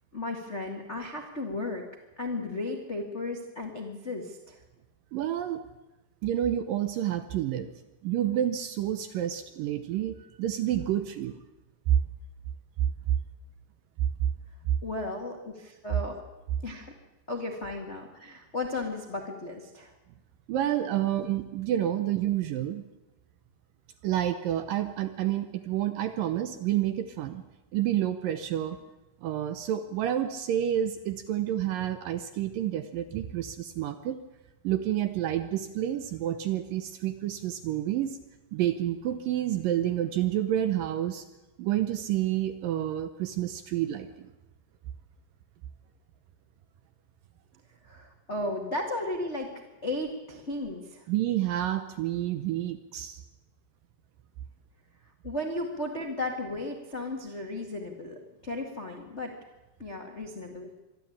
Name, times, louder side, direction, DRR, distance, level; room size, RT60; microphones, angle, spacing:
voice 1, 0.1-1.8 2.2-4.6 14.8-16.2 16.6-16.9 17.3-19.9 47.8-49.5 49.8-51.0 55.2-59.3 59.8-60.7, left 2 dB, 70° left, 2 dB, 0.6 m, -35 dB
voice 2, 5.1-5.6 6.2-7.7 8.0-11.4 11.9-12.0 20.5-22.8 24.0-27.4 27.7-28.8 29.2-34.2 34.6-38.2 38.5-41.2 41.6-44.3 51.1-53.2, right 11 dB, 75° right, 10 dB, 2.0 m, -29 dB
24.5 x 12.5 x 8.7 m, 1.0 s
omnidirectional pair, 4.9 m